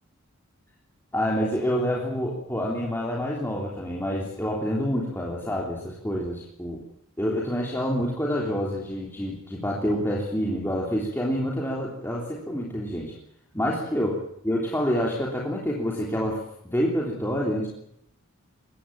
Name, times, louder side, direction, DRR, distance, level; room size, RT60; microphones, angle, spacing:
voice 1, 1.1-6.8 7.2-13.1 13.5-17.7, equal, 10° left, -3 dB, 3.2 m, -27 dB
21.5 x 19.0 x 8.7 m, 0.74 s
head